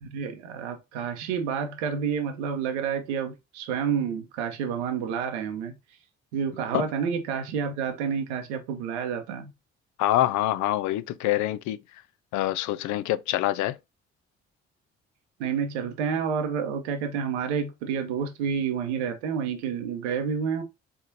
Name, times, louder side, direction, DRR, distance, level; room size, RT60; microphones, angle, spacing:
voice 1, 0.0-5.8 6.3-9.5 15.4-20.6, right 7 dB, 80° right, 0.8 m, -29 dB
voice 2, 10.0-11.8 12.3-13.8, left 14 dB, 60° left, 0.4 m, -25 dB
4.3 x 3.5 x 2.6 m
figure-of-eight pair, 40°, 34 cm